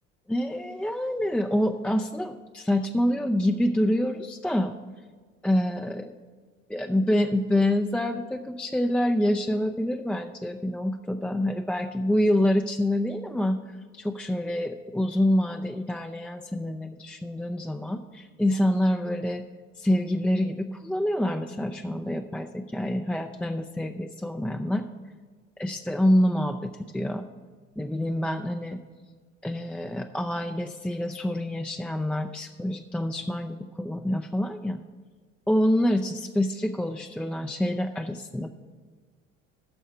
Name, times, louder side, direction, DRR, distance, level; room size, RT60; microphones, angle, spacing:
voice 1, 0.3-4.7 5.4-6.1 6.7-13.6 13.9-19.4 19.8-24.8 25.6-27.3 27.8-28.8 29.4-34.8 35.5-38.5, left 1 dB, 5° left, 5 dB, 0.3 m, -26 dB
10.5 x 6.3 x 6.6 m, 1.5 s
figure-of-eight pair, 60°, 38 cm